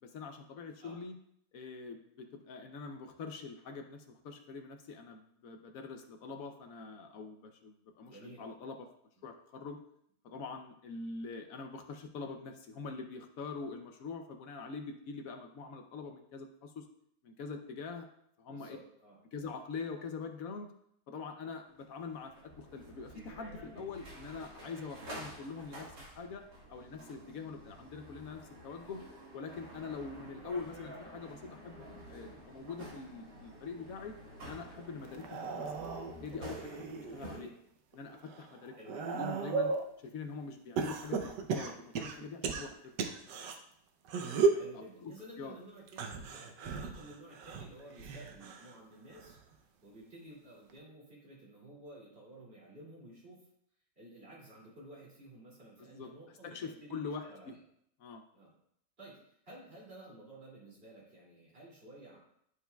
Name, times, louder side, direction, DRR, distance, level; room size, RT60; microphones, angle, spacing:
voice 1, 0.0-1.2 1.5-8.9 9.2-9.8 10.2-16.9 17.2-18.1 18.4-18.8 19.3-20.7 21.1-29.0 29.3-34.1 34.4-35.7 36.2-37.5 37.9-38.7 39.1-39.7 40.0-43.0 44.5-44.6 45.0-45.5 55.8-56.1 56.4-57.5 58.0-58.2, left 4 dB, 65° left, 5 dB, 1.0 m, -44 dB
voice 2, 8.0-8.5 18.5-19.2 37.1-37.6 38.7-39.1 44.5-49.4 49.8-53.5 54.0-57.6 58.3-58.5 59.0-59.2 59.5-62.2, right 1 dB, 35° right, -5 dB, 2.6 m, -53 dB
sound 1, 21.8-37.4, equal, 70° right, 2.0 m, -50 dB
sound 2, 35.1-37.4 37.9-39.9 40.8-43.6 44.1-44.7 45.9-48.8 49.1-49.5 50.7-50.8, right 4 dB, 90° right, 1.3 m, -35 dB
11.0 x 4.7 x 2.2 m, 0.72 s
omnidirectional pair, 1.8 m